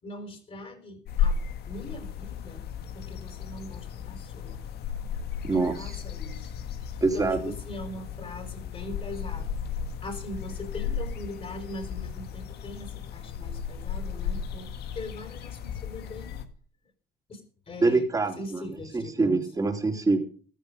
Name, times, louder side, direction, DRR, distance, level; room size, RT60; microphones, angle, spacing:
voice 1, 0.0-2.6 2.9-4.6 5.4-6.5 6.8-9.6 10.0-16.4 17.3-17.4 17.7-18.1 18.4-19.4, left 1 dB, 35° left, 4 dB, 4.9 m, -41 dB
sound 1, 1.0-16.4, left 7 dB, 75° left, 1.8 m, -34 dB
voice 2, 5.4-5.9 7.0-7.5 17.8-20.2, right 3 dB, 20° right, 4 dB, 3.4 m, -25 dB
15.0 x 13.0 x 5.2 m, 0.42 s
cardioid pair, 110°, 17 cm